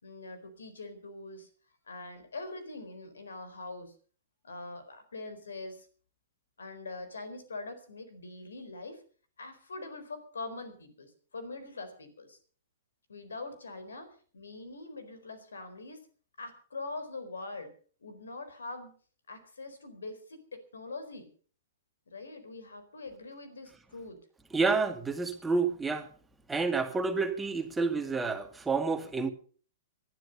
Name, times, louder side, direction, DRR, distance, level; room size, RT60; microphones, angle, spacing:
voice 1, 0.0-1.5 1.9-3.9 4.4-5.9 6.6-9.0 9.4-12.4 13.1-16.0 16.4-17.7 18.0-18.9 19.3-21.3 22.1-24.2, left 3 dB, 70° left, 4.2 m, -43 dB
voice 2, 24.5-26.1 26.5-29.3, right 4 dB, 10° right, 2.1 m, -29 dB
19.5 x 12.0 x 5.4 m
figure-of-eight pair, 110°, 0 cm